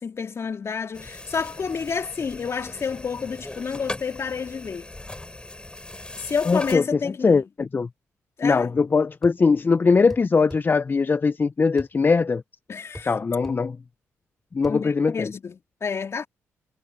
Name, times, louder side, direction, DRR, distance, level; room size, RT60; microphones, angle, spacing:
voice 1, 0.0-4.9 6.2-7.4 8.4-8.7 12.7-13.1 14.7-16.3, left 6 dB, 50° left, 3.4 m, -29 dB
sound 1, 0.9-6.8, left 2 dB, 15° left, 5.5 m, -39 dB
voice 2, 6.5-7.9 8.4-12.4 13.0-13.8 14.5-15.3, left 4 dB, 35° left, 0.6 m, -21 dB
sound 2, 9.2-9.4 10.1-10.7 11.8-12.0 12.9-13.1 13.4-13.6 14.6-14.8, equal, ahead, 3.3 m, -40 dB
supercardioid pair, 50°, 6 cm